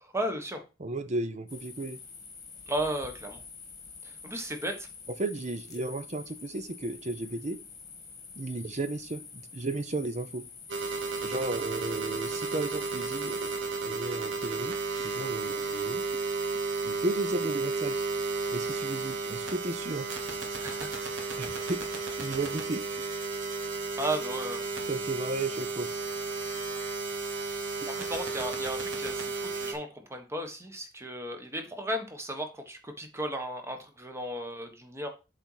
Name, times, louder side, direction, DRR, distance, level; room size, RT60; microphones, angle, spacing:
voice 1, 0.0-0.6 2.7-3.4 4.0-4.9 20.6-20.9 24.0-24.7 27.3-27.5 27.9-35.1, right 1 dB, 15° right, 5 dB, 1.3 m, -35 dB
voice 2, 0.8-2.0 5.2-7.6 8.4-10.4 11.2-13.5 13.8-16.0 16.8-18.0 18.5-20.1 21.3-21.8 22.2-23.0 24.8-25.9 27.8-27.9, right 2 dB, 35° right, 11 dB, 0.8 m, -34 dB
sound 1, 1.5-13.6, left 5 dB, 20° left, 1.6 m, -47 dB
sound 2, 10.7-29.7, right 4 dB, 80° right, 1.6 m, -33 dB
7.9 x 4.1 x 4.7 m, 0.29 s
head